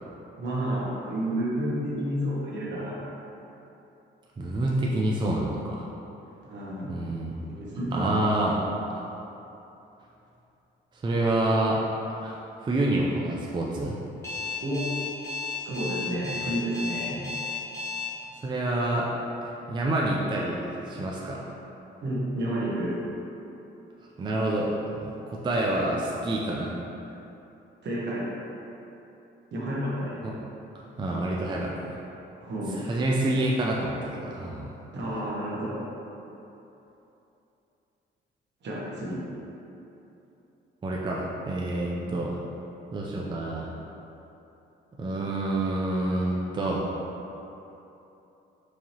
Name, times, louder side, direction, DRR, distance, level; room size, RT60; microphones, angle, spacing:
voice 1, 0.4-3.0 6.4-6.9 7.4-8.2 14.6-14.8 15.6-17.2 22.0-22.9 27.8-28.3 29.5-30.2 32.4-32.8 34.9-35.7 38.6-39.2 41.9-42.1, right 1 dB, 65° right, -6 dB, 1.0 m, -30 dB
voice 2, 4.4-5.9 6.9-7.3 7.9-8.6 8.9-9.1 11.0-11.8 12.2-14.0 18.4-19.1 19.4-21.4 24.2-26.7 30.2-30.3 31.0-31.9 32.7-34.7 40.8-42.4 42.9-43.7 45.0-46.9, right 1 dB, 25° right, -3 dB, 0.4 m, -27 dB
Alarm, 14.2-18.1, left 4 dB, 15° left, 1.0 m, -33 dB
4.7 x 2.8 x 2.8 m, 3.0 s
cardioid pair, 90°, 20 cm